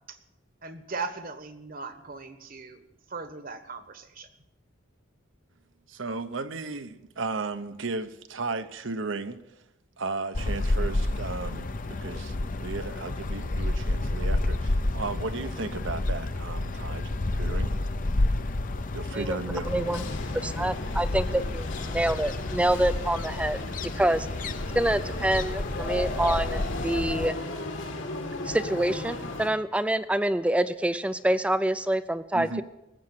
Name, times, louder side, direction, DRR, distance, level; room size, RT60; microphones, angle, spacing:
voice 1, 0.6-4.3, right 4 dB, 45° right, 10 dB, 1.3 m, -38 dB
voice 2, 5.9-9.4 10.0-17.7 18.9-19.7 32.3-32.6, right 3 dB, 75° right, 10 dB, 0.9 m, -35 dB
sound 1, 10.3-27.3, left 2 dB, 45° left, 0.7 m, -30 dB
sound 2, 19.6-29.5, left 2 dB, 70° left, 2.3 m, -36 dB
voice 3, 19.7-20.0 20.4-23.6 24.0-24.3 24.7-27.3 28.4-32.6, right 1 dB, 5° right, 12 dB, 0.4 m, -26 dB
19.0 x 7.7 x 7.5 m, 0.89 s
head